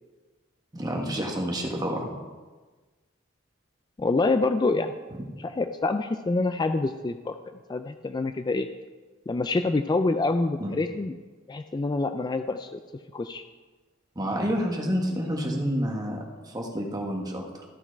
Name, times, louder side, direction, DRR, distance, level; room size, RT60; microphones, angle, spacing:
voice 1, 0.7-2.1 5.2-5.3 10.6-10.7 14.1-17.6, equal, 20° right, 0 dB, 1.5 m, -29 dB
voice 2, 4.0-5.0 5.4-7.4 7.7-8.7 9.3-11.1 11.5-12.8 13.1-13.4, left 3 dB, 20° left, 8 dB, 0.3 m, -26 dB
14.0 x 6.0 x 4.6 m, 1.3 s
head